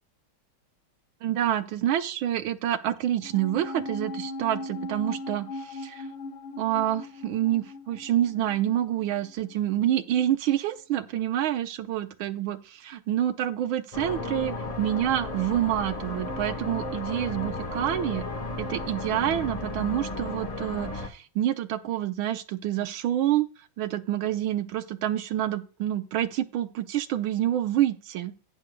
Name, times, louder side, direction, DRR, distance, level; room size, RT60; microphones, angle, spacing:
voice 1, 1.2-6.1 6.6-18.2 18.6-23.5 23.8-28.3, right 12 dB, 80° right, 10 dB, 1.6 m, -27 dB
sound 1, 3.2-9.8 10.0-10.1, left 2 dB, 80° left, 1.7 m, -39 dB
sound 2, 13.9-21.1, left 2 dB, 30° left, 0.7 m, -34 dB
17.0 x 6.4 x 2.3 m, 0.35 s
omnidirectional pair, 2.3 m